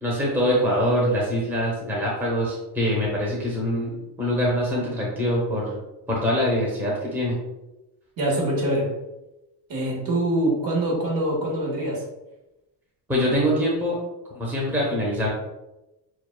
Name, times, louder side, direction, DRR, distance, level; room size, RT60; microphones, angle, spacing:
voice 1, 0.0-5.8 6.1-7.4 13.1-14.0 14.3-15.3, equal, 5° right, -4 dB, 0.9 m, -24 dB
voice 2, 8.2-8.9 9.7-12.0, right 1 dB, 50° right, -2 dB, 1.4 m, -24 dB
7.0 x 2.3 x 2.3 m, 0.99 s
cardioid pair, 135°, 45 cm